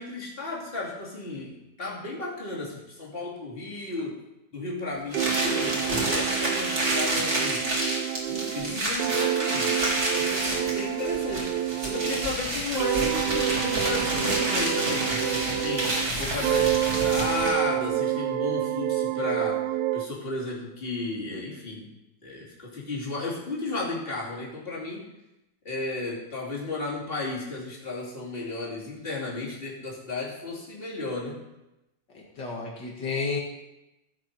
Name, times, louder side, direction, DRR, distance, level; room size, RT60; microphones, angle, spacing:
voice 1, 0.0-4.2 4.5-7.7 8.3-19.6 19.9-22.0 22.2-25.1 25.6-31.4, left 3 dB, 30° left, -5 dB, 3.0 m, -34 dB
sound 1, 5.1-17.7, right 1 dB, 40° right, 2.8 m, -29 dB
sound 2, 5.1-12.4 12.7-16.1 16.4-20.1, right 12 dB, 80° right, 1.2 m, -28 dB
voice 2, 32.1-33.4, left 4 dB, 80° left, -2 dB, 2.6 m, -31 dB
15.5 x 7.2 x 4.7 m, 0.94 s
omnidirectional pair, 1.9 m